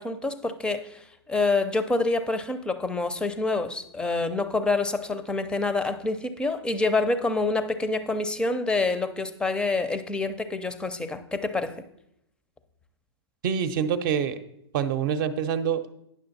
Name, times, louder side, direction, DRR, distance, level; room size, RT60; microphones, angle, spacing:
voice 1, 0.0-11.7, left 3 dB, 5° left, 11 dB, 0.5 m, -27 dB
voice 2, 13.4-14.4 14.7-15.9, right 7 dB, 45° right, 11 dB, 0.7 m, -26 dB
9.8 x 6.3 x 4.1 m, 0.77 s
hypercardioid pair, 125°, 14 cm